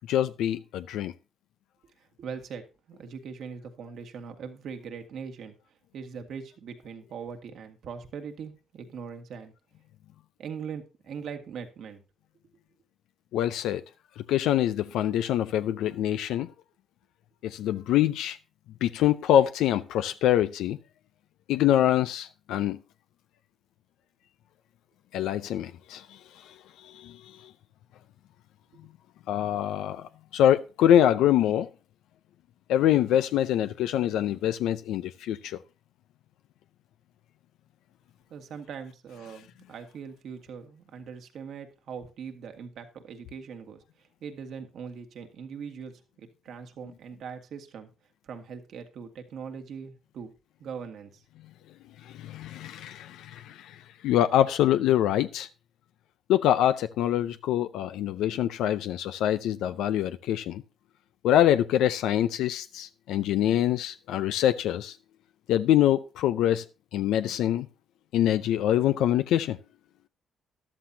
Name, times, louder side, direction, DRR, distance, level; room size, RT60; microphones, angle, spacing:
voice 1, 0.1-1.1 13.3-13.8 14.3-16.5 17.4-18.4 18.8-20.8 21.5-22.8 25.1-26.5 26.8-27.4 29.3-31.7 32.7-35.6 52.0-55.5 56.3-60.6 61.2-65.0 65.5-66.6 66.9-67.7 68.1-69.6, left 11 dB, 90° left, 0.5 m, -25 dB
voice 2, 2.0-5.5 5.9-9.5 10.4-12.0 38.3-47.9 48.2-50.3 50.6-51.2, right 6 dB, 70° right, 1.9 m, -41 dB
13.5 x 11.5 x 2.8 m
cardioid pair, 90°, 0 cm